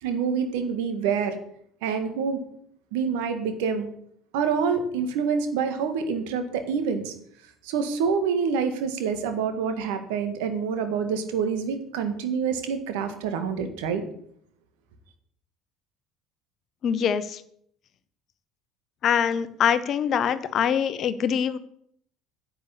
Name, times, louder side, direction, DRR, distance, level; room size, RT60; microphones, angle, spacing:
voice 1, 0.0-1.4 1.8-2.4 2.9-3.9 4.3-7.1 7.6-14.0, right 6 dB, 60° right, 7 dB, 1.8 m, -27 dB
voice 2, 16.8-17.4 19.0-21.6, left 8 dB, 45° left, 13 dB, 1.0 m, -24 dB
10.0 x 6.9 x 8.4 m, 0.67 s
figure-of-eight pair, 60°, 0 cm